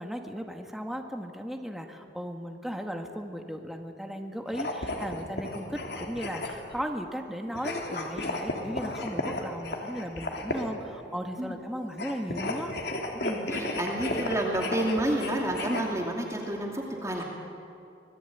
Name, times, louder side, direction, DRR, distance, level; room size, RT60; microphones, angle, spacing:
voice 1, 0.0-12.7, equal, ahead, 3 dB, 1.8 m, -36 dB
sound 1, 4.5-6.8 7.5-10.8 11.9-15.8, left 2 dB, 65° left, 3.1 m, -34 dB
voice 2, 13.1-17.2, right 1 dB, 15° right, -1 dB, 2.6 m, -30 dB
25.5 x 19.0 x 9.3 m, 2.7 s
head